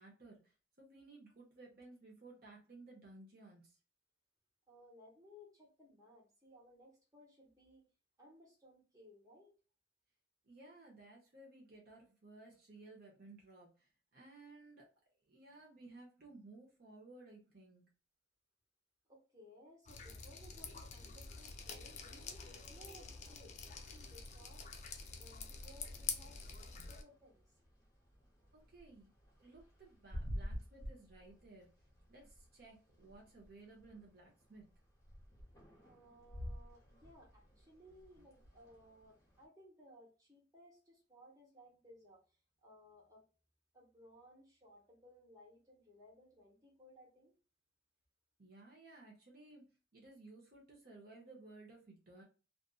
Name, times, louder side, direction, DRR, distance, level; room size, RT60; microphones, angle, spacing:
voice 1, 0.0-3.8 10.4-14.9 15.2-17.8 26.8-26.9 28.5-29.1 29.4-31.7 32.1-34.7 48.4-49.6 49.9-52.2, right 2 dB, 55° right, -2 dB, 0.8 m, -57 dB
voice 2, 4.7-7.9 8.2-9.6 19.1-23.6 23.9-24.8 25.2-27.5 35.8-43.2 43.7-47.3, equal, 20° right, -4 dB, 1.1 m, -61 dB
Drip, 19.9-27.0, left 5 dB, 40° left, 0.4 m, -47 dB
sound 1, 21.1-39.4, equal, 20° left, 1.0 m, -52 dB
2.5 x 2.5 x 2.3 m, 0.34 s
head